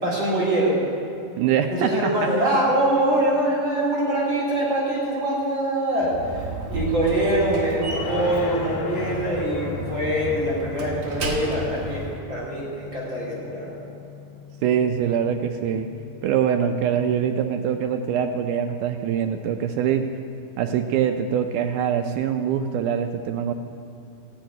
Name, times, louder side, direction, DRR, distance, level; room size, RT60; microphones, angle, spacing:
voice 1, 0.0-0.8 1.7-13.7, right 1 dB, 35° right, -7 dB, 3.3 m, -24 dB
voice 2, 1.4-2.1 14.6-15.9 16.2-20.1 20.6-23.5, right 8 dB, 80° right, 6 dB, 1.8 m, -23 dB
Slam, 6.0-12.2, right 1 dB, 60° right, 2.1 m, -33 dB
sound 1, 7.9-18.9, left 5 dB, 80° left, 2.8 m, -39 dB
14.5 x 6.2 x 9.2 m, 2.7 s
omnidirectional pair, 4.1 m